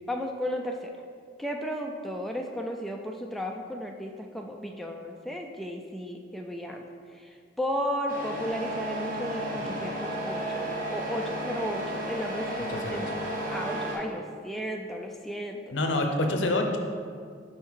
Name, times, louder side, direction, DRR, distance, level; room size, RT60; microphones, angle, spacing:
voice 1, 0.1-0.9 1.4-6.8 7.2-13.1 13.5-15.7, equal, ahead, 1 dB, 0.3 m, -34 dB
Truck, 8.1-14.0, right 1 dB, 50° right, 1.5 m, -33 dB
voice 2, 12.7-13.0 15.7-16.8, left 2 dB, 75° left, 4 dB, 0.7 m, -27 dB
5.5 x 4.3 x 4.7 m, 2.1 s
head